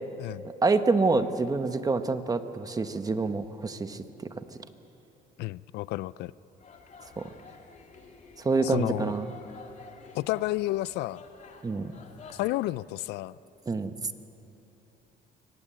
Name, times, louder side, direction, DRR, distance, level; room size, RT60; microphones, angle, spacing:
voice 1, 0.6-4.0 4.4-4.5 7.2-7.3 8.4-9.3 11.6-11.9 13.7-13.9, right 3 dB, 20° right, 9 dB, 1.1 m, -26 dB
voice 2, 5.4-6.3 8.6-9.1 10.1-11.2 12.3-13.4, left 17 dB, 80° left, 20 dB, 0.4 m, -31 dB
sound 1, 6.6-12.5, left 5 dB, 45° left, 2.7 m, -50 dB
23.5 x 19.0 x 7.8 m, 2.9 s
cardioid pair, 110°, 17 cm